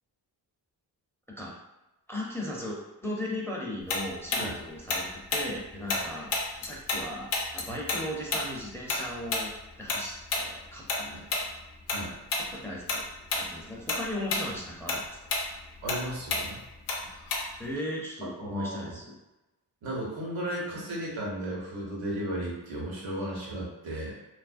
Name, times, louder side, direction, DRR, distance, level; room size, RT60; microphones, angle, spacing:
voice 1, 2.1-6.3 6.6-11.5 12.5-15.2 17.6-19.2, left 1 dB, 5° left, -3 dB, 0.6 m, -37 dB
Tick-tock, 3.9-7.0 7.3-12.0 12.3-12.5 12.9-13.5 13.8-17.7, left 3 dB, 85° left, 0.6 m, -30 dB
voice 2, 15.8-16.6 18.2-18.9 19.8-24.2, right 1 dB, 85° right, -4 dB, 1.0 m, -35 dB
2.4 x 2.0 x 2.5 m, 0.99 s
supercardioid pair, 45°, 46 cm